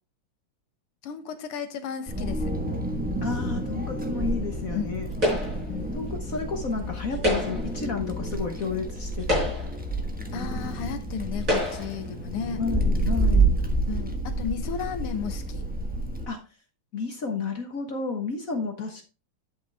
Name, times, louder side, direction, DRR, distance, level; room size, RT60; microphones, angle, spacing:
voice 1, 1.0-2.5 4.7-4.9 5.7-6.0 10.3-12.6 13.9-15.6, left 7 dB, 85° left, 2.0 m, -34 dB
Wind, 2.1-16.2, right 2 dB, 5° right, 0.7 m, -29 dB
voice 2, 3.2-5.1 5.9-9.5 12.6-13.5 16.3-16.4 16.9-19.0, left 4 dB, 45° left, 1.4 m, -31 dB
sound 1, 5.2-5.7 7.1-7.8 8.6-8.7 9.2-9.9 10.7-10.8 11.4-12.0, left 1 dB, 35° right, 5.9 m, -27 dB
11.0 x 5.7 x 3.4 m
omnidirectional pair, 2.4 m